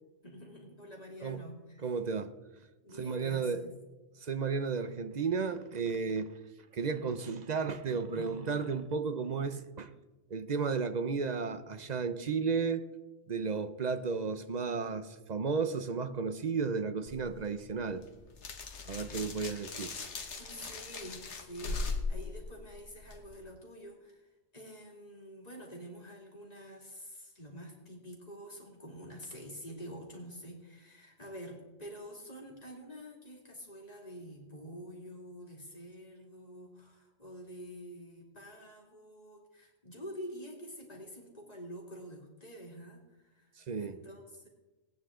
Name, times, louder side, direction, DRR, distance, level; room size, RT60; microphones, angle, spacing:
voice 1, 0.2-1.9 2.8-3.7 20.4-44.5, equal, 30° left, 2.9 m, -47 dB
voice 2, 1.8-2.3 2.9-3.6 4.2-6.3 6.7-9.9 10.3-12.8 13.3-18.0 18.8-19.9 43.6-44.0, right 5 dB, 40° right, 0.7 m, -33 dB
sound 1, 17.1-23.4, left 3 dB, 65° left, 1.4 m, -40 dB
19.0 x 9.6 x 3.8 m
omnidirectional pair, 1.3 m